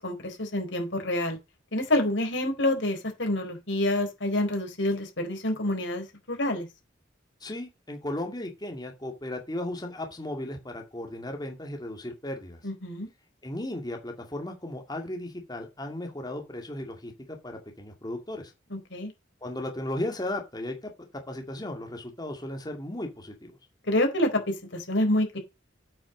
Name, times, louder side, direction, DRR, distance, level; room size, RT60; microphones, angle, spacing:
voice 1, 0.0-1.4 1.7-6.7 12.6-13.1 18.7-19.1 23.9-25.4, left 1 dB, 70° left, 4.0 m, -27 dB
voice 2, 7.4-12.6 13.4-18.5 19.4-20.9 21.3-23.6, left 1 dB, 20° left, 2.2 m, -35 dB
8.6 x 6.4 x 6.1 m
head